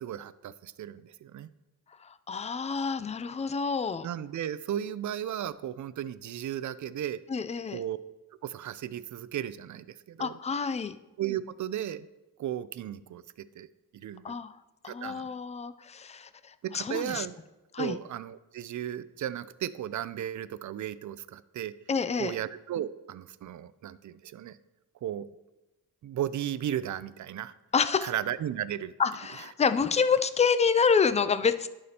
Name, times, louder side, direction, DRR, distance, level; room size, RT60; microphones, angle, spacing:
voice 1, 0.0-1.5 4.0-7.2 7.7-8.0 8.4-10.4 11.2-12.1 12.4-13.7 13.9-14.4 14.8-15.3 16.6-17.3 17.8-21.7 22.2-24.6 25.0-25.3 26.0-27.5 28.0-28.9, right 11 dB, 50° right, 16 dB, 0.5 m, -35 dB
voice 2, 2.0-4.1 7.3-7.8 10.2-11.0 14.2-14.6 14.8-17.3 17.7-18.0 21.9-22.3 27.7-28.1 29.0-31.7, left 5 dB, 20° left, 12 dB, 0.4 m, -28 dB
11.0 x 5.0 x 2.9 m, 1.1 s
cardioid pair, 70°, 39 cm